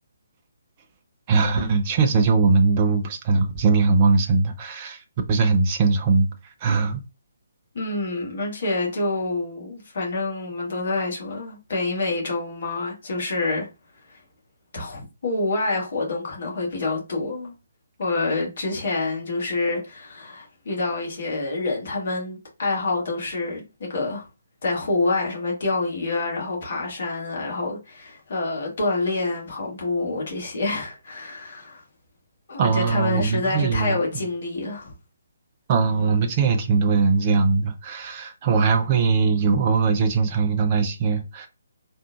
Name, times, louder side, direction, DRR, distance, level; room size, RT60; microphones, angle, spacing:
voice 1, 1.3-5.0 5.3-6.3 6.6-7.0 32.6-34.0 35.7-41.5, right 4 dB, 25° right, 0.5 m, -20 dB
voice 2, 7.7-13.7 14.1-14.2 14.7-17.5 18.0-24.2 24.6-31.8 32.5-34.9, left 2 dB, 45° left, 1.5 m, -27 dB
3.6 x 2.6 x 2.4 m
figure-of-eight pair, 140°, 0 cm